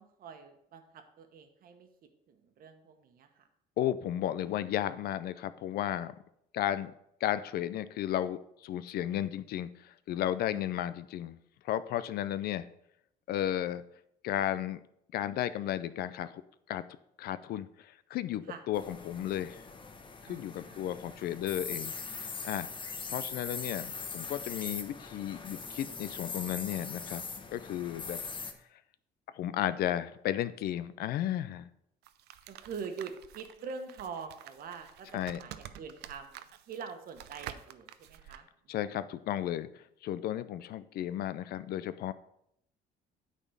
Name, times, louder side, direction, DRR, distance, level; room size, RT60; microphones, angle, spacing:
voice 1, 0.0-1.9 2.3-3.4 10.5-10.8 18.5-18.6 20.3-21.6 32.5-36.4 36.7-38.7, right 5 dB, 60° right, 6 dB, 1.2 m, -45 dB
voice 2, 3.8-6.1 6.5-6.9 7.2-11.4 11.6-12.7 13.3-13.8 14.2-14.8 15.1-16.4 16.7-16.8 17.2-19.6 20.3-22.7 23.1-27.2 27.5-28.2 29.4-31.7 35.1-35.4 38.7-39.7 40.0-42.1, left 12 dB, 65° left, 14 dB, 0.5 m, -34 dB
sound 1, 18.7-28.5, left 4 dB, 30° left, 0.9 m, -41 dB
sound 2, 32.0-38.4, right 12 dB, 80° right, 0.5 m, -49 dB
9.0 x 4.2 x 5.4 m, 0.75 s
cardioid pair, 110°, 17 cm